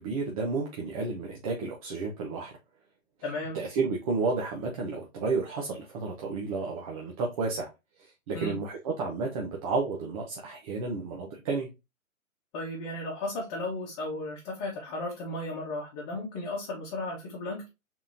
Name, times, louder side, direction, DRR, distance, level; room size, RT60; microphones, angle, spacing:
voice 1, 0.0-2.5 3.5-7.7 8.0-11.7, right 4 dB, 25° right, 0.8 m, -31 dB
voice 2, 3.2-3.6 8.3-8.6 12.5-17.7, left 2 dB, 25° left, 1.4 m, -35 dB
4.6 x 3.8 x 2.7 m
hypercardioid pair, 150°, 41 cm